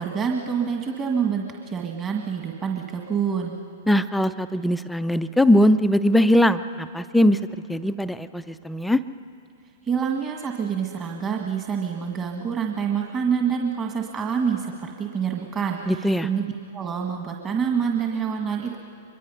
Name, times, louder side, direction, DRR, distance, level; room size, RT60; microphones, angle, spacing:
voice 1, 0.0-3.6 9.8-18.8, right 7 dB, 25° right, 1 dB, 1.7 m, -27 dB
voice 2, 3.9-9.0 15.9-16.3, left 1 dB, 5° left, 11 dB, 0.5 m, -20 dB
23.5 x 22.5 x 5.6 m, 2.7 s
hypercardioid pair, 110°, 0 cm